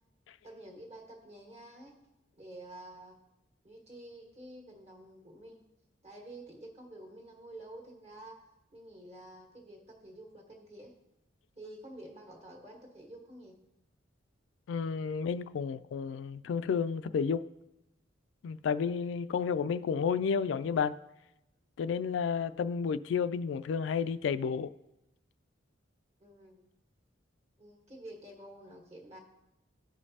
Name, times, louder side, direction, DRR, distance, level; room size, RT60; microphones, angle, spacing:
voice 1, 0.4-2.0 2.3-3.2 3.6-5.6 6.0-8.4 8.7-10.9 11.6-13.6 26.2-26.6 27.6-29.2, right 1 dB, 35° right, 1.6 m, -49 dB
voice 2, 14.7-17.5 18.4-21.0 21.8-24.7, left 6 dB, 75° left, 0.3 m, -31 dB
15.0 x 5.1 x 2.8 m
head